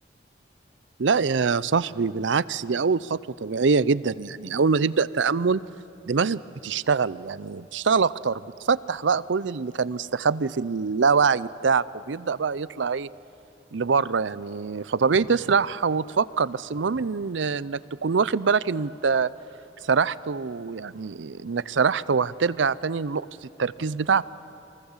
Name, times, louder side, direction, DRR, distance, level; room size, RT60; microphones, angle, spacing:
voice 1, 1.0-5.6 6.1-13.1 13.7-19.3 19.8-23.3 23.6-24.2, right 5 dB, 85° right, 18 dB, 0.6 m, -24 dB
29.0 x 23.5 x 7.3 m, 2.9 s
head